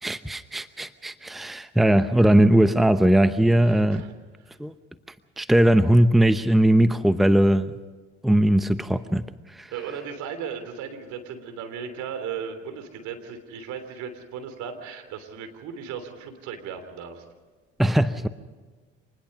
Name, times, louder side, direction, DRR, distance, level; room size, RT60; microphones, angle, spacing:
voice 1, 0.0-4.0 4.6-4.7 5.4-7.7 8.2-9.2 9.5-9.7 17.8-18.3, right 1 dB, ahead, 12 dB, 0.9 m, -19 dB
voice 2, 3.6-4.1 4.4-4.5 9.7-17.2, right 7 dB, 70° right, 7 dB, 3.3 m, -36 dB
26.5 x 20.0 x 5.5 m, 1.4 s
hypercardioid pair, 60°, 30 cm